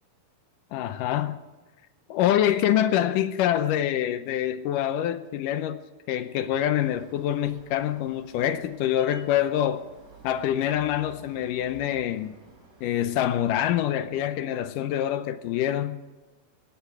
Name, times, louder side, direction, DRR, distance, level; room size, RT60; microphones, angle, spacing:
voice 1, 0.7-1.4 2.1-5.8 6.1-9.8 10.2-12.4 12.8-16.0, left 11 dB, 75° left, 2.1 m, -25 dB
sound 1, 6.8-15.1, right 2 dB, 30° right, 6.2 m, -53 dB
18.5 x 14.5 x 4.7 m
omnidirectional pair, 4.2 m